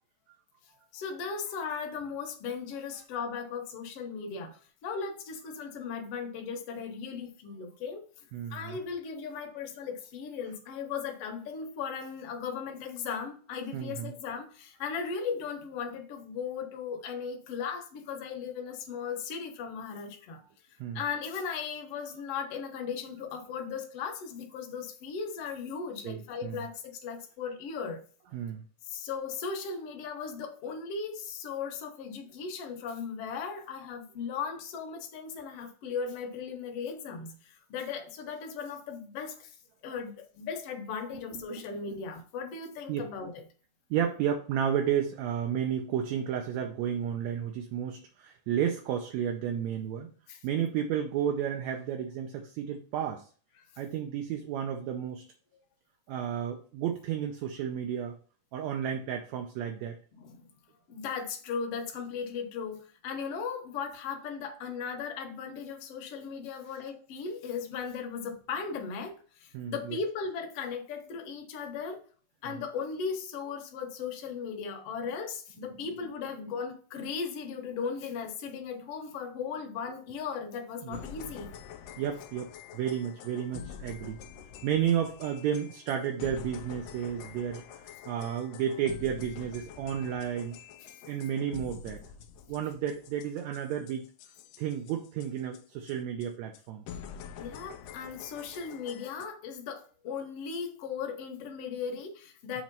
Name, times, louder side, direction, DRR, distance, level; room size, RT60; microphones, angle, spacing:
voice 1, 0.9-8.0 8.5-20.4 20.9-28.0 28.9-39.6 39.8-43.4 50.3-50.7 53.6-53.7 60.2-60.4 60.9-72.0 72.4-81.5 97.4-102.6, left 6 dB, 60° left, 1.8 m, -37 dB
voice 2, 8.3-8.8 13.7-14.1 20.8-21.0 26.1-26.7 28.3-28.6 41.3-41.4 41.9-42.0 42.9-43.1 43.9-50.1 50.4-53.3 53.8-55.2 56.1-58.1 58.5-60.0 69.5-70.0 72.5-72.6 75.7-75.8 80.8-81.0 82.0-84.2 84.6-87.6 88.1-90.5 91.1-92.0 92.5-94.1 94.6-96.9 102.5-102.6, right 9 dB, 75° right, 1.8 m, -32 dB
sound 1, 80.9-95.6 95.9-96.0 96.2-96.3 96.5-96.6 96.9-99.3, left 8 dB, 85° left, 1.4 m, -46 dB
7.3 x 3.1 x 5.3 m
omnidirectional pair, 3.6 m